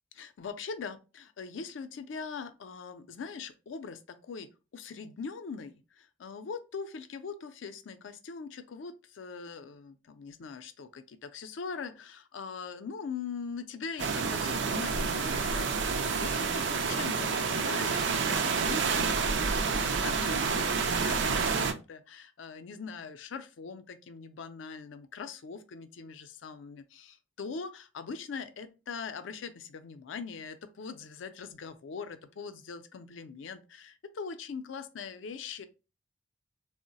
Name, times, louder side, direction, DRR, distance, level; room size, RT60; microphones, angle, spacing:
voice 1, 0.2-35.7, left 5 dB, 75° left, 0.4 m, -42 dB
sound 1, 14.0-21.7, right 5 dB, 70° right, 0.4 m, -29 dB
3.7 x 2.0 x 2.6 m
head